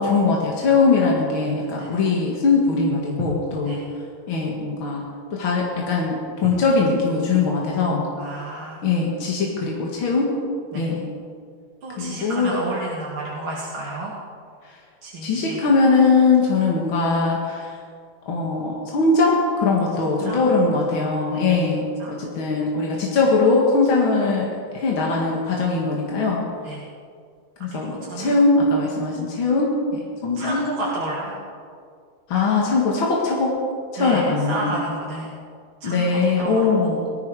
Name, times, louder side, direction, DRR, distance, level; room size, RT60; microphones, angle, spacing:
voice 1, 0.0-3.8 4.3-5.0 5.3-8.1 8.8-10.3 10.7-11.0 12.0-12.6 15.2-17.7 18.3-24.5 24.7-26.4 27.6-30.7 32.3-33.5 33.9-34.8 35.8-37.1, left 3 dB, 75° left, -2 dB, 2.6 m, -21 dB
voice 2, 8.2-8.8 10.7-10.9 11.8-14.1 15.0-15.6 20.0-20.4 21.3-21.4 22.0-22.1 26.6-26.8 27.7-28.4 30.4-31.4 34.0-35.3 35.8-37.0, right 2 dB, 80° right, -5 dB, 2.9 m, -31 dB
18.5 x 15.5 x 4.9 m, 2.2 s
omnidirectional pair, 2.2 m